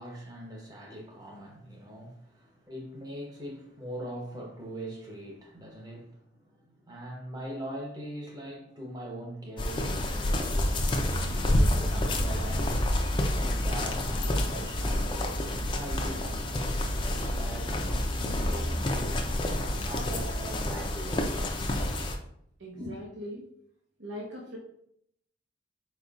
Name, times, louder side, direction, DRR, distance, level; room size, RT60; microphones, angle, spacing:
voice 1, 0.0-12.8 13.3-15.4 15.7-19.2 19.8-21.5 22.8-23.0, equal, 20° right, 1.0 m, -42 dB
sound 1, 9.6-22.2, left 1 dB, 25° left, 0.4 m, -28 dB
voice 2, 22.6-23.5 24.0-24.6, equal, 80° right, 0.9 m, -40 dB
4.7 x 4.4 x 2.4 m
head